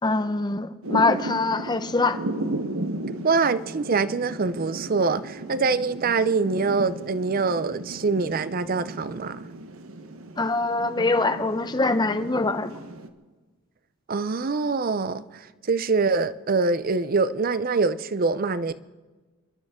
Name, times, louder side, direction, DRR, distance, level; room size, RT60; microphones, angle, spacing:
voice 1, 0.0-2.2 10.4-12.7, left 3 dB, 20° left, 0.7 m, -23 dB
Thunder / Rain, 0.8-13.1, right 1 dB, 75° right, 1.1 m, -35 dB
voice 2, 3.2-9.5 14.1-18.7, right 4 dB, 45° right, 0.5 m, -24 dB
29.5 x 12.5 x 3.6 m
head